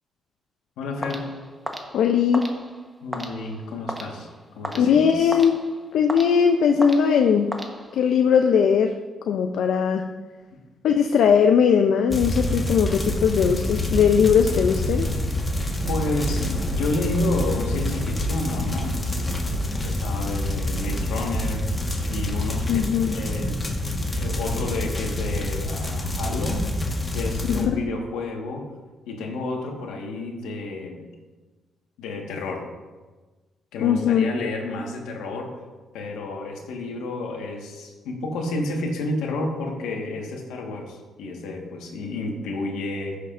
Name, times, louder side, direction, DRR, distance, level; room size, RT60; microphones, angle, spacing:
voice 1, 0.8-1.3 3.0-4.3 4.5-5.5 10.5-10.6 15.9-19.1 19.8-21.7 22.1-23.6 24.2-26.7 27.1-28.7 29.1-31.1 32.0-32.6 33.7-35.5 35.9-43.2, left 2 dB, 90° left, 1 dB, 1.4 m, -30 dB
sound 1, 1.0-8.3, equal, 5° right, 1.0 m, -37 dB
voice 2, 1.9-2.5 4.8-5.6 5.9-7.6 7.9-9.0 9.3-10.1 10.8-15.1 22.7-23.1 27.5-27.7 33.8-34.3, left 7 dB, 75° left, 5 dB, 0.5 m, -19 dB
sound 2, 12.1-27.6, left 1 dB, 20° left, 1.4 m, -27 dB
14.5 x 6.5 x 2.5 m, 1.3 s
cardioid pair, 90°, 0 cm